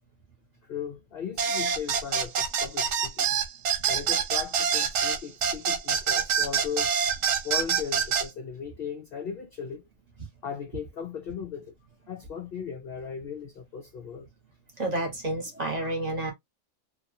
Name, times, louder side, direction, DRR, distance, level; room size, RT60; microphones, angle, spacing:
voice 1, 0.6-3.3 3.9-7.0 7.4-9.9 10.4-11.7 12.1-14.3, left 7 dB, 65° left, 0.5 m, -37 dB
sound 1, 1.4-8.3, right 7 dB, 65° right, 0.9 m, -26 dB
voice 2, 14.8-16.3, right 1 dB, 35° right, 1.0 m, -30 dB
2.9 x 2.3 x 2.6 m
omnidirectional pair, 1.5 m